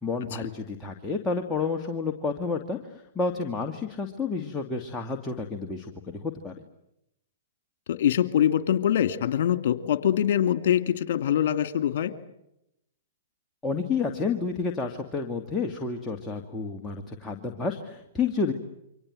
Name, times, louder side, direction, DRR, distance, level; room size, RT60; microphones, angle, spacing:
voice 1, 0.0-6.6 13.6-18.5, left 4 dB, 15° left, 2 dB, 2.4 m, -30 dB
voice 2, 7.9-12.1, left 10 dB, 60° left, 11 dB, 2.5 m, -24 dB
28.5 x 25.0 x 7.8 m, 0.83 s
hypercardioid pair, 115°, 0 cm